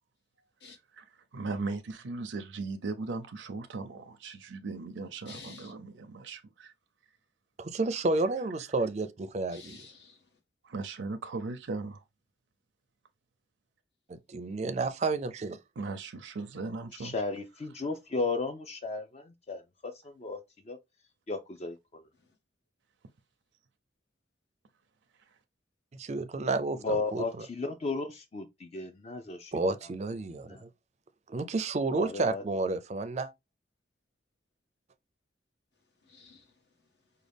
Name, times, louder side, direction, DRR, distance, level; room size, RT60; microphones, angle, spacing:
voice 1, 1.3-6.7 10.6-12.0 15.8-17.1, right 3 dB, 90° right, 0.5 m, -38 dB
voice 2, 5.2-5.7 9.5-10.4 22.2-22.3 36.0-36.8, left 4 dB, 70° left, 1.3 m, -51 dB
voice 3, 7.6-9.8 14.3-15.6 25.9-27.5 29.5-30.7 31.3-33.3, right 3 dB, 40° right, 0.4 m, -31 dB
voice 4, 16.9-20.4 20.7-20.8 21.3-22.0 26.8-29.8 30.5-30.6 31.9-32.4, left 3 dB, 35° left, 0.4 m, -35 dB
5.0 x 2.2 x 3.4 m
head